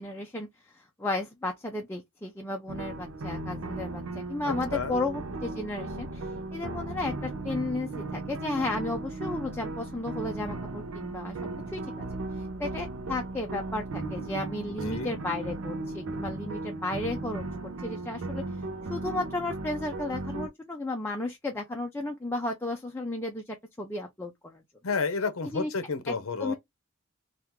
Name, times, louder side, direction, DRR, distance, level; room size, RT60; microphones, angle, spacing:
voice 1, 0.0-11.4 11.7-11.8 12.3-18.4 18.8-24.6 25.5-25.7 26.1-26.5, left 2 dB, 10° left, 0.5 m, -34 dB
sound 1, 2.7-20.5, right 2 dB, 70° right, 0.6 m, -36 dB
voice 2, 4.5-4.9 14.7-15.2 24.8-26.5, left 4 dB, 75° left, 0.6 m, -31 dB
2.9 x 2.4 x 3.5 m
head